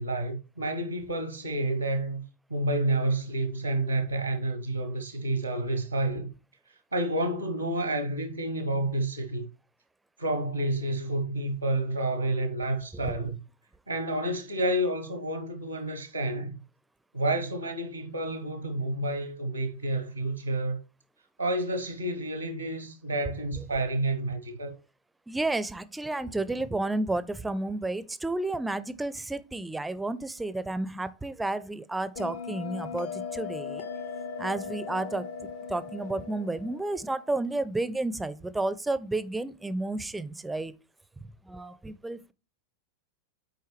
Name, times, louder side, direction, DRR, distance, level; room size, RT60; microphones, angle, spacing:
voice 1, 0.0-2.2 2.5-6.3 6.9-9.5 10.2-13.4 13.9-16.5 17.1-20.8 21.4-24.8, right 1 dB, 90° right, 0.9 m, -29 dB
voice 2, 25.3-33.9 34.4-35.3 35.7-40.7 41.5-42.3, right 2 dB, 5° right, 0.4 m, -31 dB
Bell, 32.2-37.2, left 5 dB, 55° left, 0.7 m, -38 dB
8.0 x 4.5 x 3.1 m
figure-of-eight pair, 90°, 0 cm